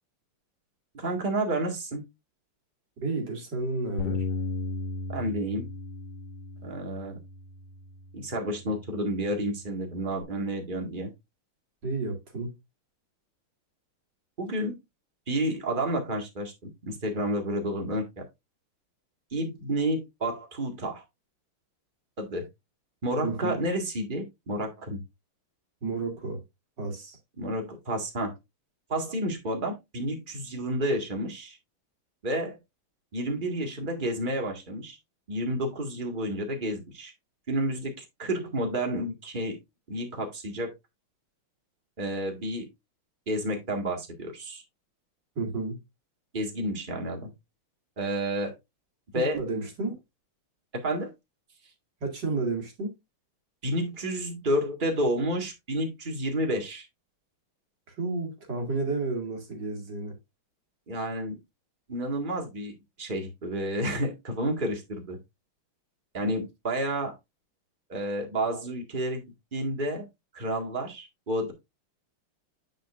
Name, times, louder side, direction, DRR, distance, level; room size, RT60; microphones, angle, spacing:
voice 1, 0.9-2.0 5.1-5.7 6.6-7.2 8.1-11.1 14.4-14.8 15.3-18.2 19.3-21.0 22.2-22.5 23.0-25.0 27.4-28.3 28.9-31.6 32.2-32.6 33.1-35.0 35.3-37.1 37.5-37.9 38.2-39.6 39.9-40.7 42.0-42.7 43.3-44.6 46.3-47.3 48.0-48.5 49.1-49.4 50.7-51.1 53.6-56.9 60.9-61.4 61.9-65.2 66.1-67.2 67.9-69.2 69.5-70.1 70.3-71.5, right 1 dB, 25° right, 1.9 m, -30 dB
voice 2, 3.0-4.2 11.8-12.5 23.2-23.5 25.8-26.4 26.8-27.2 45.4-45.8 49.1-49.9 52.0-52.9 57.9-60.1, right 3 dB, 55° right, 2.8 m, -31 dB
Bass guitar, 4.0-10.2, left 3 dB, 90° left, 2.1 m, -37 dB
8.9 x 6.2 x 2.5 m
omnidirectional pair, 2.4 m